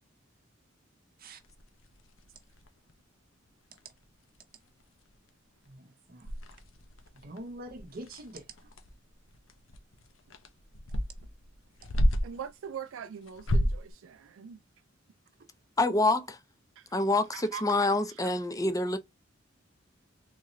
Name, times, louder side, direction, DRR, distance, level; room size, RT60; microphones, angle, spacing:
sound 1, 1.4-2.9 3.5-3.6 3.8-4.0 4.4-4.5 4.8-5.3 5.6-5.7 6.2-12.5 13.3-13.9, equal, 85° left, 0.8 m, -32 dB
voice 1, 5.7-6.3 7.2-8.4, right 1 dB, 50° right, 0.7 m, -44 dB
voice 2, 12.2-14.6 16.8-16.9 17.3-17.6 18.2-18.3, right 7 dB, 80° right, 0.3 m, -42 dB
voice 3, 15.8-16.4 16.9-19.0, left 2 dB, 20° left, 0.6 m, -26 dB
3.7 x 3.0 x 2.6 m
head